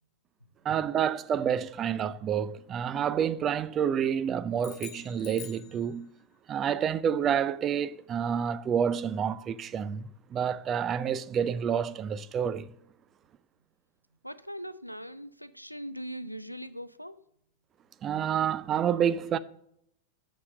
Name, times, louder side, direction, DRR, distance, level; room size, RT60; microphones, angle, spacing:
voice 1, 0.6-6.1 6.5-12.7 18.0-19.4, right 8 dB, 30° right, 0.4 m, -29 dB
sound 1, 4.6-6.4, left 11 dB, 40° left, 0.9 m, -47 dB
voice 2, 14.2-17.2, equal, 90° left, 0.4 m, -40 dB
6.6 x 5.7 x 6.2 m
figure-of-eight pair, 90°, 0 cm